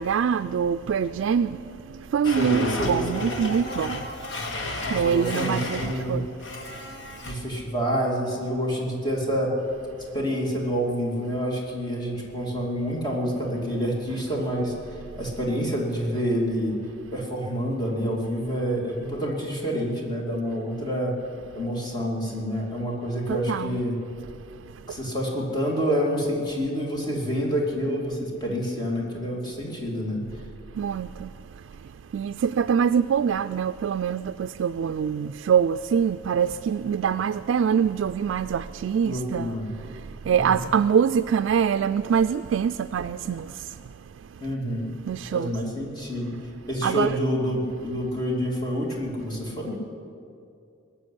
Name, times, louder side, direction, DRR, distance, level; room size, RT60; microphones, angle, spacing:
voice 1, 0.0-4.1 4.9-6.3 23.3-23.8 24.9-25.0 30.7-31.3 32.1-39.6 39.9-43.8 45.1-45.5 46.8-47.2, right 7 dB, 85° right, 0.3 m, -24 dB
Domestic sounds home sounds, 2.2-6.0 6.4-7.3, left 2 dB, 80° left, 1.6 m, -33 dB
voice 2, 2.3-3.3 4.8-6.2 7.2-9.5 10.1-16.8 17.1-21.2 21.5-24.0 24.9-30.2 39.0-39.7 40.3-40.6 44.4-44.9 45.3-46.4 46.7-49.8, equal, 20° left, 2.6 m, -28 dB
19.0 x 7.1 x 9.8 m
head